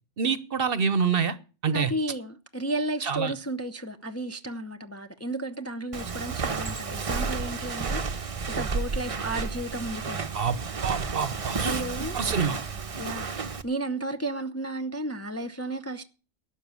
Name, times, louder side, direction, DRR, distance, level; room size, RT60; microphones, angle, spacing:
voice 1, 0.2-1.4 1.6-1.9 3.0-3.3 10.3-12.6, right 6 dB, 55° right, 1.0 m, -27 dB
voice 2, 1.7-10.3 11.6-12.4 13.0-16.0, right 1 dB, 15° left, 0.6 m, -33 dB
Walk footsteps, 5.9-13.6, right 5 dB, 35° right, 0.7 m, -31 dB
12.0 x 7.3 x 8.4 m
omnidirectional pair, 1.3 m